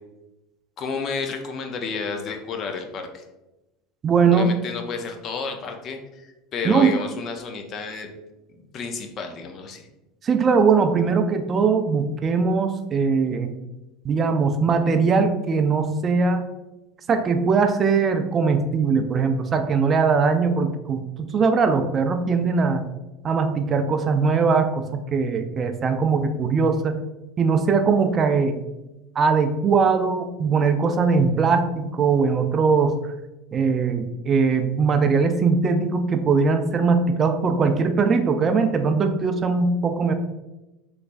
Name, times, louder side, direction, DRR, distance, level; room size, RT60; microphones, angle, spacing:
voice 1, 0.8-3.2 4.3-8.1 8.7-9.9, left 5 dB, 45° left, 5 dB, 0.5 m, -31 dB
voice 2, 4.0-4.5 6.6-6.9 10.2-13.5 14.0-16.5 17.1-22.9 23.2-27.0 27.4-28.6 29.2-33.0 33.5-40.1, right 5 dB, 30° right, 7 dB, 0.3 m, -20 dB
3.2 x 3.0 x 2.5 m, 1.0 s
supercardioid pair, 105°, 0 cm